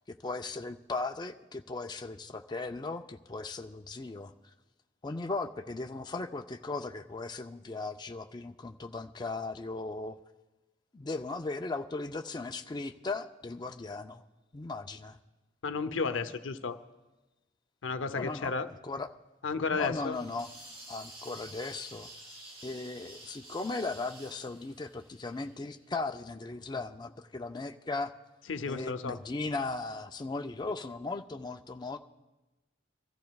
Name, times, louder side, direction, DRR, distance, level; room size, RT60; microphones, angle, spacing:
voice 1, 0.1-4.3 5.0-10.2 10.9-14.2 14.5-15.2 18.2-18.5 18.8-19.1 19.7-20.5 20.9-22.1 22.6-28.1 28.7-32.0, left 3 dB, 20° left, 5 dB, 0.4 m, -37 dB
voice 2, 15.6-16.8 17.8-18.7 19.4-20.2 28.5-29.2, left 4 dB, 85° left, 10 dB, 0.6 m, -33 dB
sound 1, 20.1-25.9, right 1 dB, 30° right, 4.4 m, -50 dB
24.5 x 14.0 x 2.3 m, 1.1 s
head